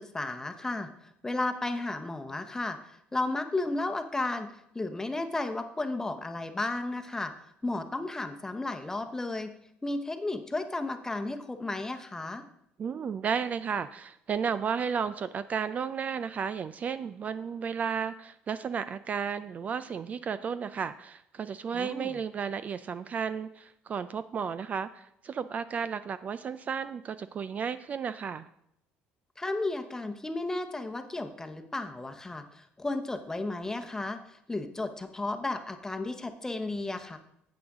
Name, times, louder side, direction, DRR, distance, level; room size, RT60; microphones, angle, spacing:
voice 1, 0.0-2.8 3.1-4.5 4.7-7.3 7.6-9.5 9.8-12.4 21.7-22.1 29.4-37.2, left 2 dB, 15° left, 8 dB, 0.9 m, -33 dB
voice 2, 12.8-28.5, right 6 dB, 40° right, 14 dB, 0.4 m, -33 dB
11.0 x 7.9 x 3.6 m, 0.76 s
cardioid pair, 100°, 4 cm